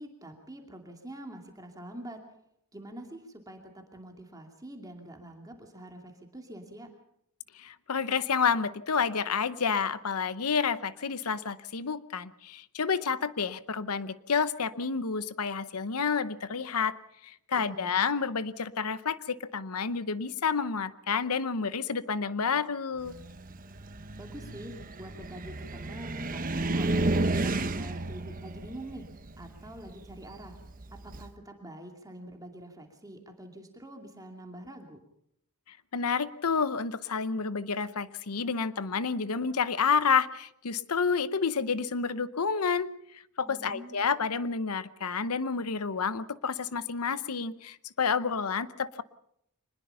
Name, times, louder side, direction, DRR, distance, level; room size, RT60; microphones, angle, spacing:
voice 1, 0.0-2.2 2.7-6.9 17.5-18.0 24.2-29.1 29.4-30.6 30.9-35.0 43.4-44.0, right 1 dB, 15° right, 3 dB, 2.6 m, -45 dB
voice 2, 7.5-16.9 17.2-23.1 35.7-42.9 43.4-49.0, left 5 dB, 80° left, 16 dB, 0.9 m, -29 dB
Car, 23.0-31.3, right 2 dB, 40° right, 1.1 m, -32 dB
24.0 x 20.5 x 5.7 m, 0.74 s
head